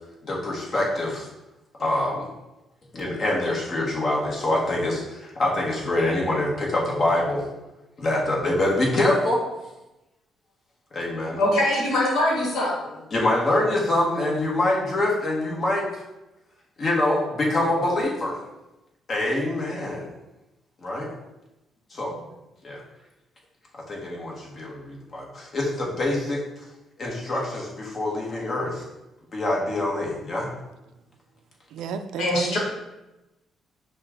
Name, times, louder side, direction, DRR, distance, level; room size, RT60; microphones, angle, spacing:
voice 1, 0.2-1.3 1.8-2.3 2.9-7.4 8.0-9.4 10.9-11.4 13.1-16.0 16.8-18.4 19.1-20.1 20.8-21.1 21.9-22.1 22.6-22.8 23.9-26.4 27.0-28.8 29.3-30.5, left 1 dB, 45° left, -3 dB, 1.4 m, -25 dB
voice 2, 11.4-13.0 32.2-32.6, left 1 dB, 75° left, -2 dB, 1.3 m, -23 dB
voice 3, 31.7-32.6, right 6 dB, 85° right, 9 dB, 0.3 m, -32 dB
5.7 x 2.4 x 3.7 m, 0.99 s
cardioid pair, 90°, 0 cm